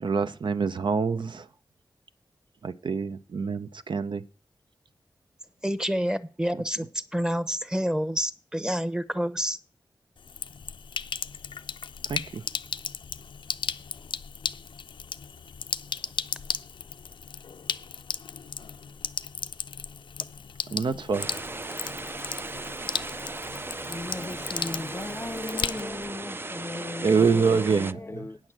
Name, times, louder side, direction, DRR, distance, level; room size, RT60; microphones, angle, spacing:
voice 1, 0.0-1.5 2.6-4.2 12.1-12.4 20.7-21.3 27.0-28.2, right 5 dB, 70° right, 0.6 m, -26 dB
voice 2, 5.6-9.6, equal, 10° right, 0.9 m, -28 dB
Sink (filling or washing), 10.2-26.1, left 6 dB, 80° left, 0.4 m, -36 dB
sound 1, 21.1-27.9, right 2 dB, 25° right, 0.4 m, -37 dB
voice 3, 23.9-28.4, left 2 dB, 30° left, 0.5 m, -37 dB
9.0 x 6.3 x 7.4 m
cardioid pair, 50°, 8 cm